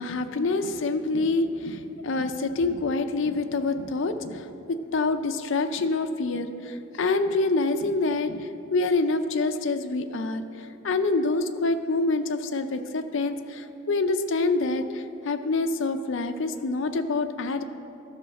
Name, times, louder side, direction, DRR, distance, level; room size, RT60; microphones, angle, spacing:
voice 1, 0.0-17.6, left 3 dB, 55° left, 8 dB, 0.5 m, -26 dB
13.0 x 4.8 x 6.3 m, 2.8 s
head